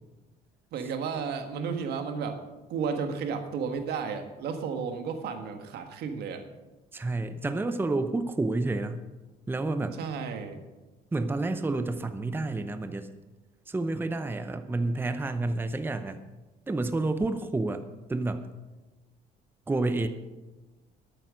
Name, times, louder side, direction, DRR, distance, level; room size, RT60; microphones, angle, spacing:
voice 1, 0.7-2.4 2.7-6.5 10.0-10.6, right 6 dB, 75° right, 7 dB, 1.6 m, -33 dB
voice 2, 6.9-9.0 9.5-10.0 11.1-13.1 13.7-16.2 16.7-17.8 18.1-18.5 19.7-20.1, right 2 dB, 10° right, 10 dB, 0.7 m, -29 dB
12.0 x 9.0 x 6.3 m, 1.2 s
cardioid pair, 110°, 17 cm